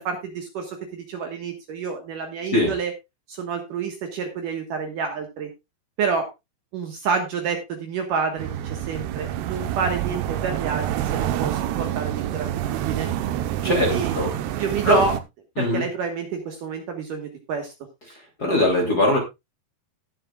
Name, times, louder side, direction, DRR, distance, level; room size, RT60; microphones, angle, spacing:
voice 1, 0.0-2.9 3.3-5.5 6.0-6.3 6.7-13.1 13.6-14.2 14.6-15.1 15.6-17.7, right 5 dB, 60° right, 4 dB, 2.6 m, -28 dB
sound 1, 8.4-15.2, right 12 dB, 80° right, 3.0 m, -27 dB
voice 2, 13.6-14.3 14.8-15.0 15.6-15.8 18.4-19.2, left 2 dB, 25° left, 1 dB, 2.9 m, -21 dB
19.5 x 7.7 x 2.4 m, 0.22 s
omnidirectional pair, 4.8 m